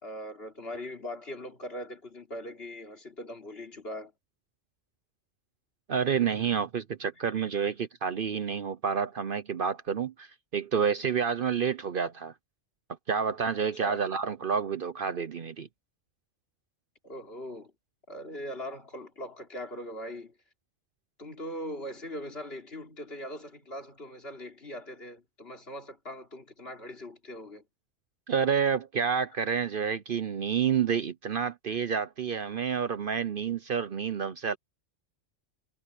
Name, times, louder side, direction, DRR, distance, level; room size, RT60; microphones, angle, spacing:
voice 1, 0.0-4.1 13.8-14.0 17.0-17.7 18.1-20.3 21.2-27.6, left 1 dB, 55° left, 3.6 m, -40 dB
voice 2, 5.9-12.3 13.1-15.7 28.3-34.6, right 7 dB, 50° right, 0.8 m, -29 dB
omnidirectional pair, 1.2 m